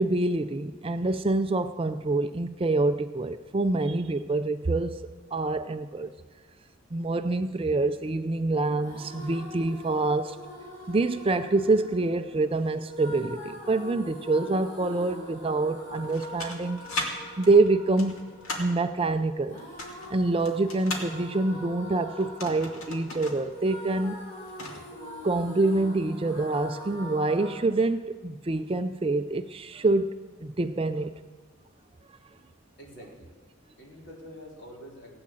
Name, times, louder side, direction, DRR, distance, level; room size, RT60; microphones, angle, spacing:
voice 1, 0.0-5.0 5.3-6.1 6.9-10.4 10.9-16.8 17.4-18.3 18.6-19.6 20.1-24.2 25.2-31.1, right 2 dB, 25° right, 9 dB, 0.4 m, -26 dB
sound 1, 8.7-27.6, left 1 dB, 35° left, 5.9 m, -44 dB
sound 2, 15.9-17.1 17.4-18.8 19.6-21.1 22.2-23.4 23.7-23.8 24.2-24.8, left 2 dB, 90° left, 2.4 m, -36 dB
voice 2, 32.8-33.3 33.8-35.1, equal, 55° left, -2 dB, 3.7 m, -46 dB
16.5 x 8.7 x 7.6 m, 1.4 s
head